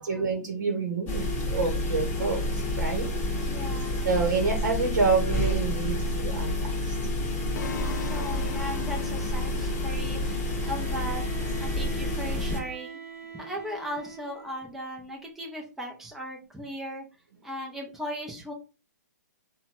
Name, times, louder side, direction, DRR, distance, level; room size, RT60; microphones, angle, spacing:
voice 1, 0.0-3.1 4.0-6.5 6.8-6.9, right 4 dB, 85° right, 3 dB, 0.8 m, -28 dB
sound 1, 1.1-12.6, left 1 dB, 20° left, 1.0 m, -29 dB
voice 2, 3.4-4.1 7.2-7.3 7.8-11.2 11.6-13.0 13.3-17.0 17.4-18.5, equal, 5° right, 0 dB, 0.5 m, -37 dB
sound 2, 7.6-11.6, left 5 dB, 80° left, 0.5 m, -41 dB
Bowed string instrument, 10.4-14.7, right 6 dB, 55° right, 0.7 m, -44 dB
2.7 x 2.2 x 3.0 m, 0.32 s
hypercardioid pair, 150°, 10 cm